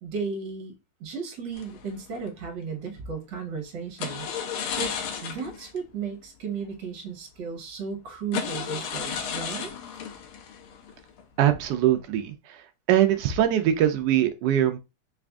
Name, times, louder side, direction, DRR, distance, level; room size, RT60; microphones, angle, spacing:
voice 1, 0.0-0.7 1.0-9.7, right 5 dB, 60° right, 1.5 m, -35 dB
sound 1, 1.5-2.3 4.0-5.8 6.0-6.2 6.6-6.7 7.5-7.6 8.3-11.4 11.8-12.1, left 7 dB, 80° left, 1.5 m, -34 dB
voice 2, 11.4-14.8, right 11 dB, 85° right, 0.9 m, -22 dB
4.1 x 2.5 x 3.4 m
omnidirectional pair, 2.4 m